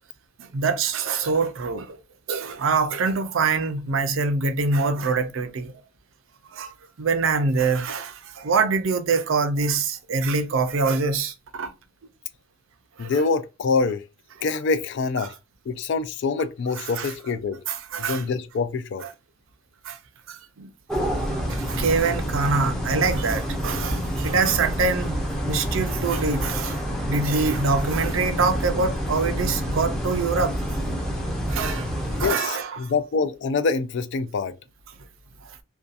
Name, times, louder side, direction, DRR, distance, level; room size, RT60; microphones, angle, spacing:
voice 1, 0.4-2.0 2.3-5.7 6.5-11.7 13.0-13.2 16.8-17.1 17.7-18.2 19.8-20.0 20.3-20.7 21.5-25.2 25.5-26.8 27.1-30.6 31.5-31.9 32.2-32.9, right 4 dB, 65° right, 0.5 m, -24 dB
voice 2, 13.0-14.0 14.4-15.3 15.7-17.6 18.0-19.0 32.2-34.5, left 4 dB, 55° left, 0.3 m, -25 dB
sound 1, 20.9-32.3, equal, ahead, 0.5 m, -28 dB
2.7 x 2.2 x 2.4 m
head